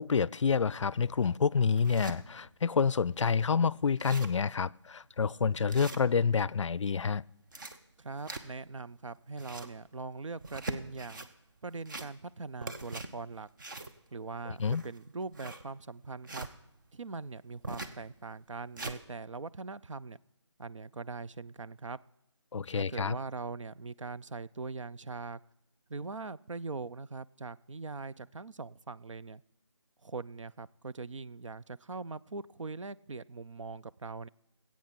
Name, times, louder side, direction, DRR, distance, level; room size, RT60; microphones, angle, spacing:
voice 1, 0.0-7.2 14.6-14.8 22.5-23.2, left 5 dB, 75° left, 0.4 m, -28 dB
sound 1, 0.8-0.9 1.4-2.2 2.7-2.8 3.1-3.2 3.6-3.7 3.9-4.5 4.9-5.0 5.7-6.5 7.3-8.7 9.2-9.8 10.3-11.3 11.7-12.3 12.6-16.5 17.6-18.0 18.4-19.0, right 2 dB, 40° right, 1.0 m, -42 dB
voice 2, 8.0-11.3 11.6-13.5 14.1-16.5 16.9-20.2 20.6-22.0 22.7-25.4 25.9-29.4 30.0-34.3, right 4 dB, 90° right, 0.5 m, -41 dB
17.5 x 8.6 x 5.9 m
figure-of-eight pair, 165°, 16 cm